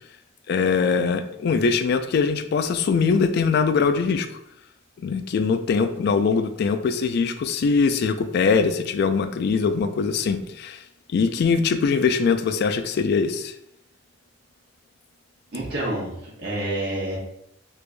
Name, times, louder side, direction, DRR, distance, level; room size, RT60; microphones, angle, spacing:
voice 1, 0.5-4.3 5.0-10.8 11.1-13.5, left 5 dB, 55° left, 10 dB, 0.3 m, -22 dB
voice 2, 15.5-17.2, right 1 dB, 60° right, -6 dB, 1.0 m, -28 dB
3.3 x 3.2 x 2.5 m, 0.77 s
head